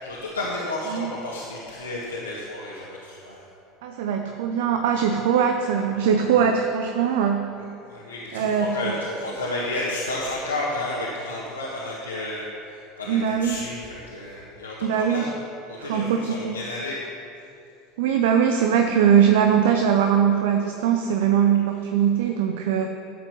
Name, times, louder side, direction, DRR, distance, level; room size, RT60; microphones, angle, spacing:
voice 1, 0.0-3.4 7.9-12.5 13.0-15.4 15.7-17.0, left 2 dB, 85° left, -6 dB, 1.5 m, -31 dB
voice 2, 3.8-7.5 8.3-9.0 13.1-13.6 14.8-15.3 15.8-16.6 18.0-22.9, right 8 dB, 65° right, 4 dB, 0.7 m, -21 dB
13.0 x 7.6 x 5.6 m, 2.7 s
figure-of-eight pair, 75°, 0 cm